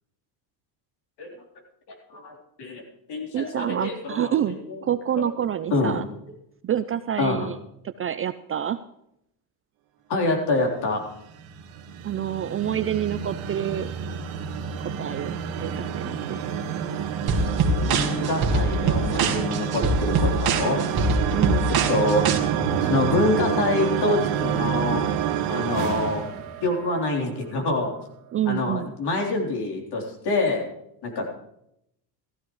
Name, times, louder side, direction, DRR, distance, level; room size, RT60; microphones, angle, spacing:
voice 1, 1.9-2.8 3.1-4.8 5.2-5.3 5.7-6.0 7.2-7.5 10.1-11.0 17.8-20.8 21.9-22.2 22.8-26.2 26.6-27.9 28.5-30.6 31.0-31.3, left 2 dB, 50° left, 1 dB, 3.7 m, -26 dB
voice 2, 3.3-6.0 6.6-7.6 8.0-8.8 12.0-13.9 15.0-16.4 21.3-21.7 28.3-28.9, right 10 dB, 30° right, 12 dB, 0.4 m, -27 dB
sound 1, 11.1-27.2, right 8 dB, 70° right, 1.9 m, -28 dB
sound 2, 17.3-22.4, right 2 dB, 45° right, 1.9 m, -23 dB
15.0 x 14.5 x 3.2 m, 0.78 s
supercardioid pair, 85°, 50 cm